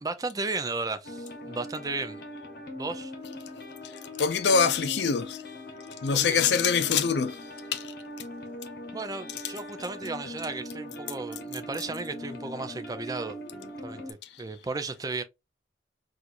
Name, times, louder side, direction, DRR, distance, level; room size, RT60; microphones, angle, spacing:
voice 1, 0.0-2.2 2.8-3.1 6.1-6.4 8.9-13.4 13.8-15.2, right 3 dB, 20° right, 0.4 m, -34 dB
sound 1, 1.0-14.1, left 1 dB, 55° left, 1.0 m, -41 dB
voice 2, 4.2-5.4 6.0-7.4 7.7-7.9, left 6 dB, 75° left, 0.5 m, -24 dB
4.3 x 2.5 x 2.5 m
head